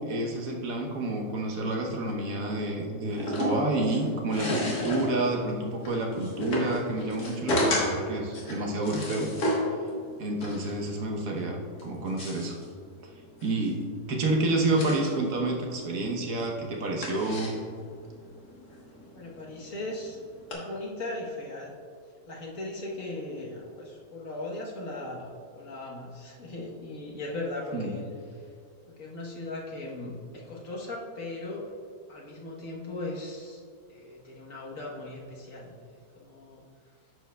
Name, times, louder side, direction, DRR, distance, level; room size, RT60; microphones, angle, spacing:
voice 1, 0.0-9.3 10.2-12.6 13.4-13.8 14.1-17.5 27.7-27.9, right 2 dB, 65° right, 0 dB, 1.4 m, -29 dB
sound 1, 3.1-20.5, equal, 85° left, 2.0 m, -34 dB
voice 2, 19.1-20.2 20.5-21.7 22.3-28.0 28.3-28.4 29.0-31.7 32.1-33.6 33.9-36.6, left 2 dB, 60° left, -3 dB, 1.5 m, -38 dB
10.5 x 7.3 x 2.3 m, 2.2 s
omnidirectional pair, 1.6 m